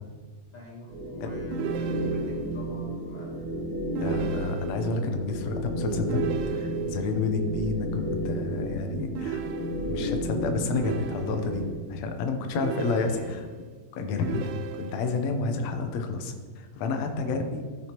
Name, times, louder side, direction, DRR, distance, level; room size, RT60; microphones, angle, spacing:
voice 1, 0.5-3.8 7.0-7.2 13.1-13.4 14.0-14.5 17.0-17.4, left 2 dB, 50° left, -3 dB, 1.8 m, -44 dB
sound 1, 0.9-11.7, right 1 dB, 40° right, 2.8 m, -32 dB
sound 2, 1.5-2.5 4.0-5.0 6.1-7.1 9.2-10.2 10.7-11.7 12.6-13.6 14.2-15.2, right 7 dB, 90° right, 2.1 m, -37 dB
voice 2, 4.0-9.4 9.8-13.4 13.9-14.4 14.8-17.6, left 4 dB, 70° left, 5 dB, 1.9 m, -30 dB
14.0 x 6.3 x 2.9 m, 1.5 s
omnidirectional pair, 3.4 m